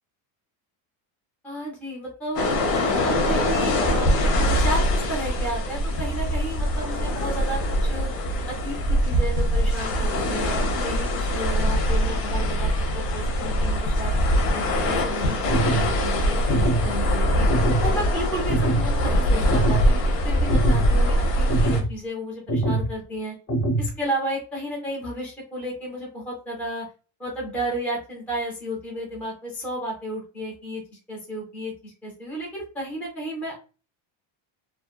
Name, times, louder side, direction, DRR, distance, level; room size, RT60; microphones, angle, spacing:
voice 1, 1.4-8.1 8.5-14.2 14.5-17.5 17.8-23.3 23.8-26.9 27.2-30.8 31.1-33.6, right 1 dB, 5° left, -3 dB, 0.4 m, -33 dB
sound 1, 2.4-21.8, equal, 85° left, 0.9 m, -23 dB
sound 2, 15.5-15.9 16.5-16.9 17.5-17.9 18.5-18.9 19.5-19.9 20.5-20.9 21.5-21.9 22.5-22.9 23.5-23.9, right 2 dB, 25° left, 0.8 m, -23 dB
2.7 x 2.5 x 2.2 m, 0.36 s
cardioid pair, 170°, 49 cm